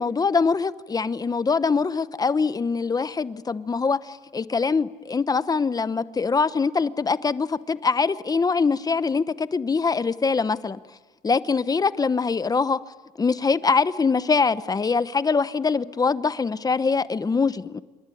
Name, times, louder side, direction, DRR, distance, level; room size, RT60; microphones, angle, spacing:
voice 1, 0.0-10.8 11.2-12.8 13.2-17.8, left 4 dB, 20° left, 0.9 m, -23 dB
27.5 x 23.0 x 9.3 m
cardioid pair, 110°, 17 cm